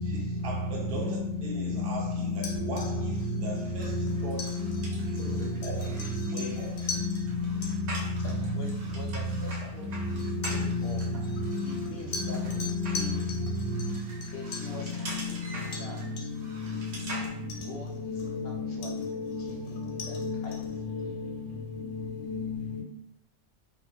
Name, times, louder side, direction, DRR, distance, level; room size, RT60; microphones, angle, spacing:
voice 1, 0.0-4.7 5.0-6.9, right 2 dB, 65° right, 0.7 m, -40 dB
sound 1, 2.3-7.2 7.6-7.7 8.8-8.9 10.2-14.8 15.7-15.9 16.2-16.5 16.9-17.0 17.5-18.4 18.8-20.7, left 3 dB, 90° left, 1.0 m, -41 dB
sound 2, 3.8-17.3, right 2 dB, 90° right, 1.0 m, -44 dB
voice 2, 8.2-11.0 11.6-12.4 12.9-13.2 14.3-16.3 17.5-19.1 19.4-21.2, left 2 dB, 65° left, 0.8 m, -45 dB
voice 3, 16.5-17.3 18.1-18.2 18.5-18.9 20.2-20.7 22.3-22.8, left 5 dB, 20° right, 0.9 m, -34 dB
2.3 x 2.1 x 3.2 m
omnidirectional pair, 1.3 m